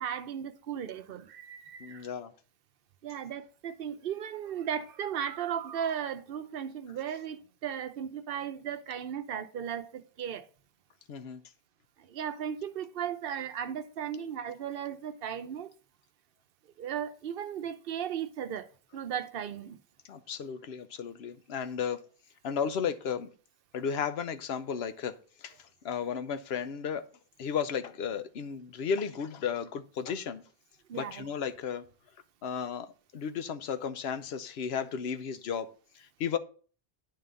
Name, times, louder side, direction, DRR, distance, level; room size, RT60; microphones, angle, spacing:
voice 1, 0.0-2.1 3.0-10.5 12.0-15.7 16.8-19.8 30.9-31.3, right 8 dB, 65° right, 0.9 m, -36 dB
voice 2, 1.8-2.3 11.1-11.4 20.0-22.0 22.4-23.3 23.7-27.1 27.4-30.4 30.9-31.9 32.4-36.4, left 7 dB, 80° left, 1.0 m, -34 dB
10.5 x 3.8 x 6.8 m
omnidirectional pair, 1.0 m